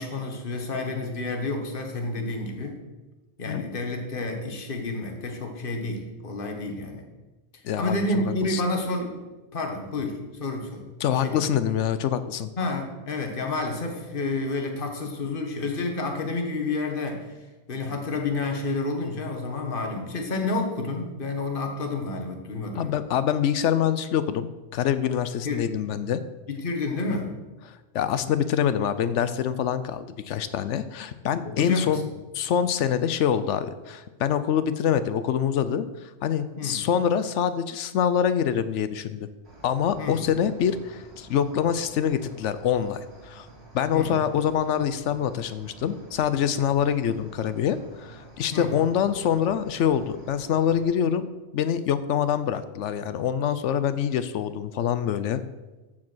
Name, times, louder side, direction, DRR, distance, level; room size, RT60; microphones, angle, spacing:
voice 1, 0.0-2.8 3.4-7.1 7.8-9.2 9.5-11.5 12.6-17.4 17.7-23.0 25.4-25.7 26.5-27.3 31.4-32.0 36.6-36.8 40.0-40.2 43.9-44.1 48.5-48.7, left 2 dB, 50° left, 3 dB, 1.6 m, -30 dB
voice 2, 7.6-8.6 11.0-12.5 22.8-26.2 27.7-32.0 32.3-39.3 39.6-43.5 43.7-51.3 51.5-55.4, left 8 dB, 80° left, 12 dB, 0.9 m, -25 dB
Cricket, 39.4-50.8, right 3 dB, 60° right, 3.4 m, -49 dB
14.5 x 4.8 x 6.2 m, 1.2 s
omnidirectional pair, 1.2 m